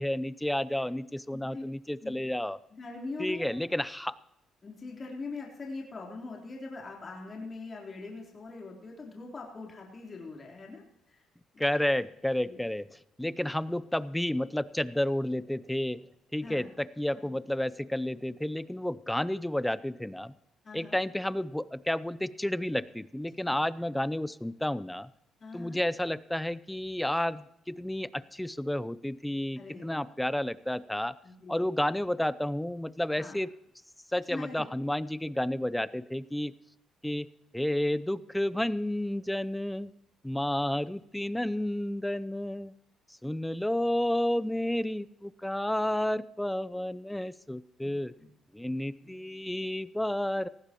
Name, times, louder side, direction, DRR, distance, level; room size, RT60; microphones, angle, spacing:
voice 1, 0.0-2.6 3.2-4.2 11.6-16.0 16.3-20.3 20.7-25.1 25.5-31.1 31.5-33.5 34.1-36.5 37.0-37.3 37.5-39.9 40.2-42.7 43.2-48.1 48.5-50.5, left 1 dB, 5° left, 17 dB, 0.5 m, -31 dB
voice 2, 1.3-1.6 2.0-2.1 2.8-3.5 4.6-10.8 11.1-11.2 12.4-12.6 16.4-16.7 17.1-17.3 20.6-21.0 25.4-25.8 29.6-30.1 31.2-31.7 33.1-33.3 34.3-34.7 47.8-47.9 48.2-48.3 49.0-49.1, left 3 dB, 35° left, -1 dB, 3.7 m, -42 dB
19.0 x 15.5 x 3.0 m, 0.79 s
cardioid pair, 100°, 0 cm